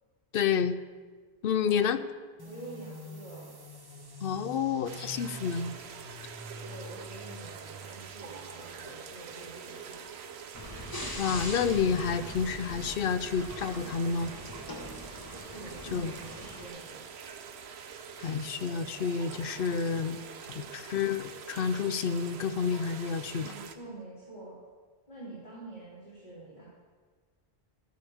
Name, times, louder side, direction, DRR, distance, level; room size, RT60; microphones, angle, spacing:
voice 1, 0.3-0.7 1.4-2.0 4.2-5.7 11.2-14.3 15.9-16.1 18.2-20.2 20.5-23.5, left 6 dB, 65° left, 12 dB, 0.7 m, -29 dB
voice 2, 1.6-2.0 2.4-3.5 4.4-5.1 6.5-10.0 15.5-17.0 23.3-24.6 25.1-26.6, right 2 dB, 45° left, -10 dB, 3.3 m, -47 dB
sound 1, 2.4-9.6, equal, 25° right, 1.0 m, -47 dB
sound 2, 4.9-23.8, right 7 dB, 90° right, 1.0 m, -45 dB
sound 3, 10.5-16.7, left 1 dB, 20° left, 1.2 m, -41 dB
13.5 x 11.0 x 3.6 m, 1.5 s
omnidirectional pair, 1.0 m